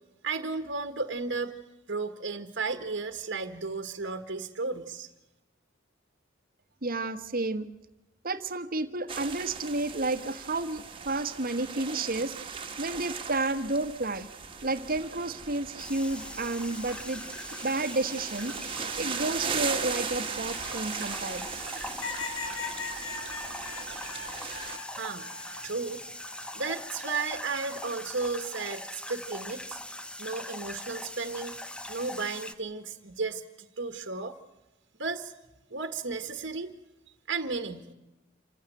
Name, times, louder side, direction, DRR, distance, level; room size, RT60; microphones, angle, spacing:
voice 1, 0.2-1.5 1.9-5.1 24.9-25.3 25.6-26.0 26.5-29.8 30.2-31.6 31.9-33.4 33.8-34.3 35.0-35.3 35.7-36.7 37.3-37.9, right 4 dB, 65° right, 7 dB, 1.6 m, -34 dB
voice 2, 6.8-7.7 8.2-14.3 14.6-18.6 19.0-21.5, right 2 dB, 45° right, 10 dB, 1.5 m, -31 dB
sound 1, 9.1-24.8, right 5 dB, 25° right, 2.0 m, -38 dB
sound 2, 15.8-32.5, left 1 dB, 5° left, 0.9 m, -41 dB
sound 3, 22.0-25.7 26.2-27.0 28.4-28.8, left 4 dB, 85° left, 4.2 m, -39 dB
28.0 x 15.5 x 9.0 m, 1.0 s
head